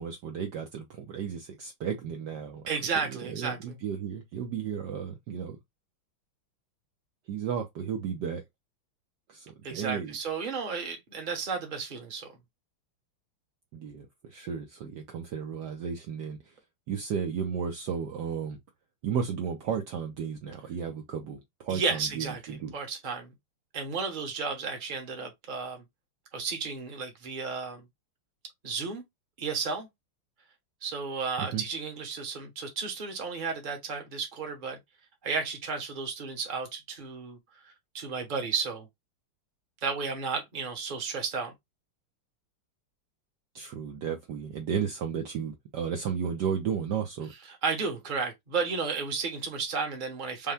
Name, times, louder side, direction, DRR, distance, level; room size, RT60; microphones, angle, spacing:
voice 1, 0.0-2.6 3.1-5.6 7.3-8.4 9.3-10.2 13.7-16.6 16.9-18.6 19.0-22.7 31.4-31.6 43.5-47.3, right 7 dB, 65° right, 1.1 m, -34 dB
voice 2, 2.7-3.6 9.6-12.3 21.7-23.3 23.7-25.8 26.3-27.8 28.6-29.0 29.4-29.9 30.8-34.8 35.2-37.4 37.9-38.9 39.8-41.5 47.6-50.5, right 5 dB, 30° right, 1.1 m, -33 dB
5.5 x 2.2 x 3.4 m
omnidirectional pair, 2.3 m